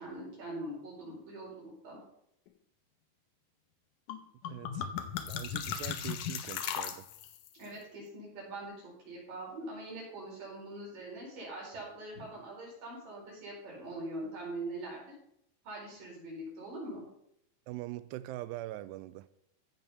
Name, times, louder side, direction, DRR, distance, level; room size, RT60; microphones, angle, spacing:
voice 1, 0.0-2.0 7.5-15.0 15.6-17.0, right 1 dB, 55° right, 6.0 m, -43 dB
sound 1, 4.1-4.2 4.4-7.5, left 9 dB, 85° left, 1.8 m, -37 dB
voice 2, 4.5-4.9 5.3-7.1 17.7-19.3, right 15 dB, 90° right, 2.7 m, -42 dB
15.0 x 5.7 x 5.5 m
omnidirectional pair, 4.7 m